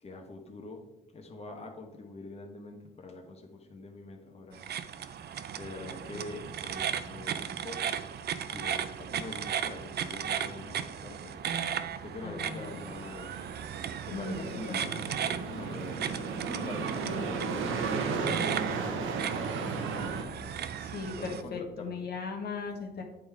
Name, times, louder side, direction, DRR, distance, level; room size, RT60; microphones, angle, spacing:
voice 1, 0.0-4.7 5.6-7.9 8.5-11.4 12.0-13.4 14.1-15.0 15.5-16.2 16.5-20.7 21.2-22.0, left 2 dB, 30° left, 2 dB, 1.1 m, -45 dB
sound 1, 4.5-21.4, right 8 dB, 55° right, 0.5 m, -36 dB
voice 2, 12.2-12.8 14.1-15.0 20.8-23.0, left 4 dB, 55° left, 2 dB, 1.1 m, -38 dB
sound 2, 12.5-20.2, right 5 dB, 85° right, 0.9 m, -35 dB
8.3 x 3.7 x 4.7 m, 1.0 s
cardioid pair, 90°, 20 cm